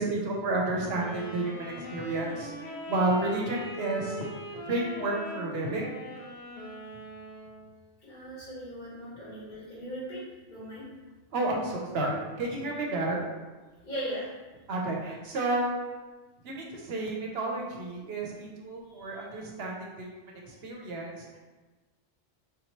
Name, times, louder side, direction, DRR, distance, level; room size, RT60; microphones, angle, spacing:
voice 1, 0.0-2.5 2.9-4.2 4.6-5.8 11.3-13.2 14.7-15.7 16.4-20.1 20.5-21.3, right 2 dB, 65° right, -1 dB, 0.9 m, -31 dB
Wind instrument woodwind instrument, 0.9-7.8, equal, 65° left, 0.9 m, -41 dB
voice 2, 8.0-10.2 10.5-10.9 13.8-14.3 18.9-19.1, equal, 45° left, -8 dB, 1.2 m, -38 dB
3.7 x 2.9 x 2.9 m, 1.2 s
omnidirectional pair, 1.2 m